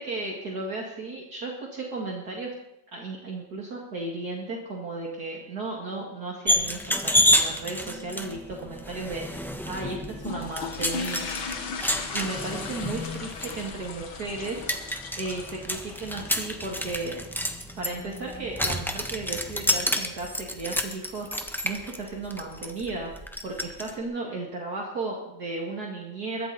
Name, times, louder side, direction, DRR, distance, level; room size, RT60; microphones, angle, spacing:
voice 1, 0.0-2.5 2.9-11.4 12.1-14.7 15.2-17.2 17.8-21.3 21.6-23.1 23.4-26.5, right 3 dB, 50° right, -1 dB, 2.7 m, -34 dB
Open Gate and Door, 6.5-23.9, left 1 dB, ahead, 0.9 m, -29 dB
sound 1, 10.2-16.8, left 4 dB, 80° left, 2.3 m, -37 dB
22.5 x 14.5 x 4.2 m, 0.85 s
omnidirectional pair, 2.1 m